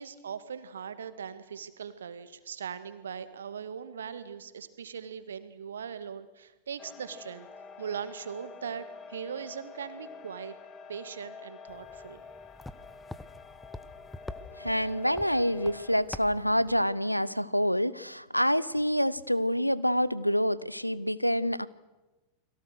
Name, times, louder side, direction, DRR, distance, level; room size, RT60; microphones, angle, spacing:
voice 1, 0.0-7.5 7.8-10.5 10.9-12.2, right 7 dB, 65° right, 12 dB, 1.8 m, -40 dB
sound 1, 6.8-16.0, left 5 dB, 25° left, 2.1 m, -48 dB
sound 2, 11.7-16.9, left 2 dB, 5° left, 1.2 m, -46 dB
voice 2, 14.6-21.7, equal, 90° left, 19 dB, 0.7 m, -27 dB
30.0 x 22.5 x 6.6 m, 1.1 s
figure-of-eight pair, 90°, 0 cm